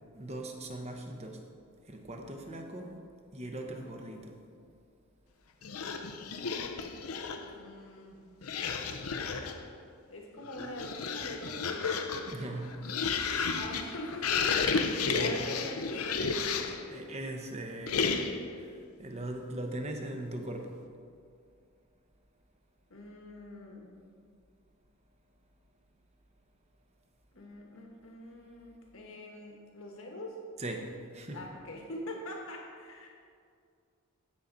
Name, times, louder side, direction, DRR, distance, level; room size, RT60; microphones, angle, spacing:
voice 1, 0.1-1.4 1.9-3.0 3.3-4.4 12.3-12.9 13.3-13.6 15.0-15.4 16.7-18.3 18.6-20.8 30.6-31.4, right 1 dB, 30° right, 3 dB, 0.9 m, -40 dB
sound 1, 5.6-7.5 8.4-9.7 10.4-16.9 17.9-18.5, left 5 dB, 80° left, 0.7 m, -32 dB
voice 2, 7.4-8.2 8.6-9.1 10.1-12.0 13.5-16.3 22.9-23.9 27.3-30.4 31.3-33.1, left 1 dB, 65° left, 0 dB, 1.4 m, -44 dB
15.5 x 5.8 x 4.0 m, 2.3 s
head